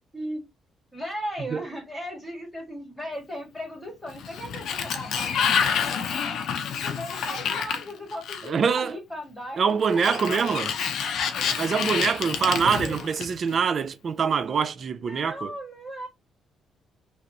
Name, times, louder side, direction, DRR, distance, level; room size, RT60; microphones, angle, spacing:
voice 1, 0.9-6.1 6.8-10.7 11.3-12.1 12.4-13.0 15.0-16.1, equal, 5° left, 1.8 m, -37 dB
Sliding door, 4.1-8.7 9.8-13.5, left 7 dB, 75° left, 0.6 m, -28 dB
voice 2, 8.4-9.0 9.6-10.7 11.6-15.5, right 6 dB, 50° right, 0.4 m, -24 dB
3.2 x 2.5 x 2.8 m
cardioid pair, 90°, 0 cm